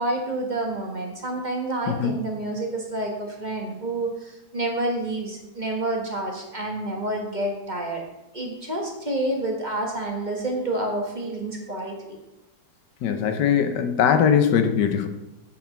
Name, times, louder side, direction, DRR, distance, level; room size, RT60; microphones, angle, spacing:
voice 1, 0.0-8.0 8.3-12.2 13.2-13.3, right 1 dB, 30° right, 1 dB, 1.4 m, -29 dB
voice 2, 1.9-2.2 13.0-15.1, left 8 dB, 90° left, 7 dB, 1.5 m, -21 dB
8.1 x 6.2 x 5.7 m, 0.96 s
omnidirectional pair, 1.8 m